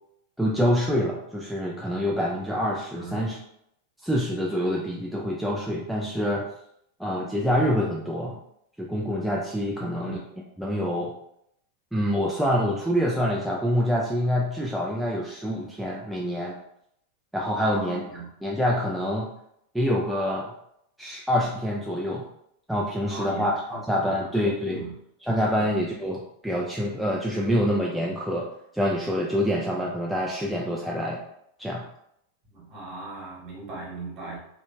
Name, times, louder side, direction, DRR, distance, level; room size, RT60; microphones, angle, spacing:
voice 1, 0.4-3.4 4.0-6.5 7.0-8.4 8.8-10.2 10.6-11.1 11.9-16.6 17.3-18.0 18.4-19.3 19.7-20.5 21.0-22.3 22.7-24.8 25.2-28.5 28.7-31.2 31.6-31.8, equal, ahead, -3 dB, 0.3 m, -26 dB
voice 2, 9.8-10.3 17.6-18.3 23.1-24.2 24.6-24.9 25.5-25.7 32.5-34.4, right 2 dB, 40° right, -4 dB, 1.1 m, -38 dB
2.6 x 2.5 x 2.2 m, 0.74 s
figure-of-eight pair, 90°, 0 cm